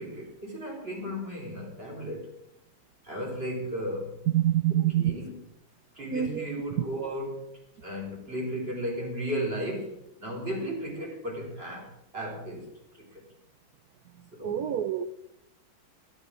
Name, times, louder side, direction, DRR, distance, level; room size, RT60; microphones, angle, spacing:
voice 1, 0.0-2.3 3.0-4.2 4.7-5.4 5.9-7.5 7.8-12.7 12.9-13.2 14.3-14.7, equal, 25° right, -1 dB, 3.9 m, -35 dB
voice 2, 4.3-5.1 6.1-6.5 6.8-6.9 14.4-15.0, right 12 dB, 70° right, 11 dB, 0.9 m, -26 dB
12.0 x 11.5 x 6.2 m, 0.80 s
omnidirectional pair, 2.3 m